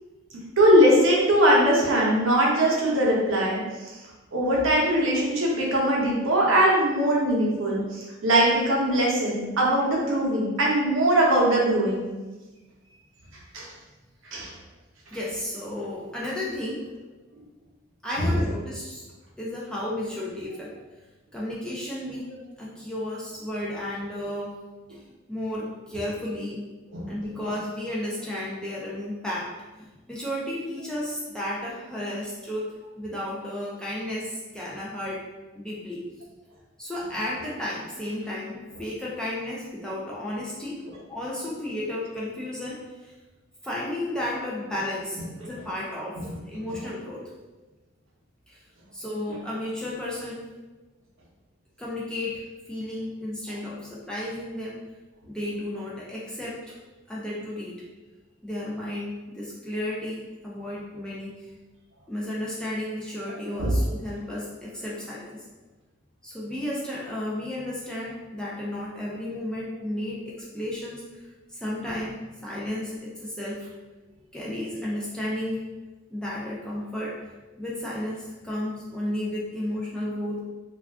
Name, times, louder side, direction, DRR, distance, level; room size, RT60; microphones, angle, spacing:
voice 1, 0.6-3.9 4.3-12.1 13.5-13.7 14.3-14.5 18.2-18.3 22.3-22.4 26.9-27.1 63.6-63.7, right 1 dB, 70° right, -3 dB, 0.7 m, -21 dB
voice 2, 15.1-16.8 18.0-19.0 19.4-20.7 21.3-22.2 22.6-24.5 25.3-26.6 27.1-29.5 29.7-35.2 35.5-36.0 36.8-40.8 41.1-42.8 43.0-43.1 43.6-46.1 46.5-47.2 48.5-48.6 48.9-50.4 51.8-52.4 52.7-54.8 55.3-56.7 57.1-57.7 58.4-61.5 62.1-65.4 66.2-71.0 71.5-73.7 74.3-75.6 76.1-77.3 77.6-80.4, left 1 dB, 5° left, -6 dB, 0.4 m, -33 dB
2.4 x 2.3 x 3.4 m, 1.2 s
head